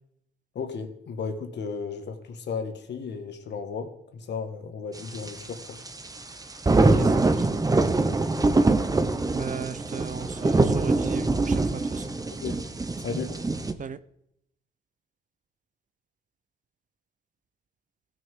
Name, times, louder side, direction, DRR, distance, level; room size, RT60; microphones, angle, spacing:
voice 1, 0.5-5.8 12.4-12.6 13.0-13.4, left 5 dB, 60° left, 1.6 m, -34 dB
sound 1, 5.0-13.7, right 3 dB, 20° right, 0.9 m, -24 dB
voice 2, 6.7-7.5 9.3-12.1 13.8-14.0, right 7 dB, 40° right, 0.6 m, -37 dB
16.0 x 6.3 x 3.7 m
cardioid pair, 90°, 20 cm